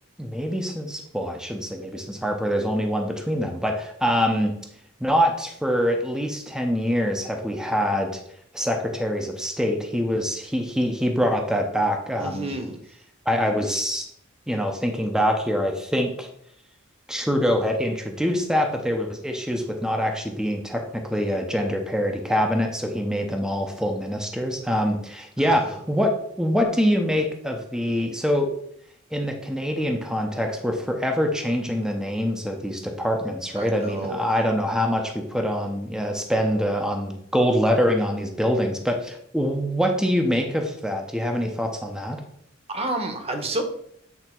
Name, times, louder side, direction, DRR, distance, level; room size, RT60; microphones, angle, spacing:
voice 1, 0.2-4.6 5.0-8.2 8.5-12.5 13.3-14.1 14.5-16.3 17.1-28.5 29.1-42.2, equal, 5° right, 3 dB, 0.7 m, -24 dB
voice 2, 12.2-12.8 25.4-25.8 33.6-34.3 42.7-43.6, right 2 dB, 30° right, 5 dB, 1.0 m, -30 dB
8.0 x 3.4 x 4.4 m, 0.68 s
head